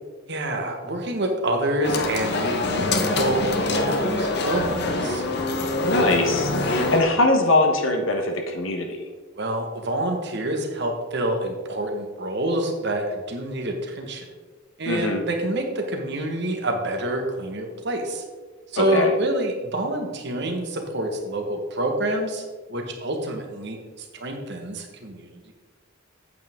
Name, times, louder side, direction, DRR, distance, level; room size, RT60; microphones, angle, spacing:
voice 1, 0.3-5.2 9.3-14.3 14.8-18.2 18.7-22.4 22.7-25.5, right 1 dB, 55° right, 3 dB, 1.5 m, -27 dB
sound 1, 1.8-7.0, left 2 dB, 55° left, 0.9 m, -24 dB
voice 2, 5.8-9.0 14.9-15.2 18.8-19.1, left 2 dB, 75° left, 3 dB, 1.2 m, -22 dB
8.5 x 8.3 x 3.7 m, 1.4 s
head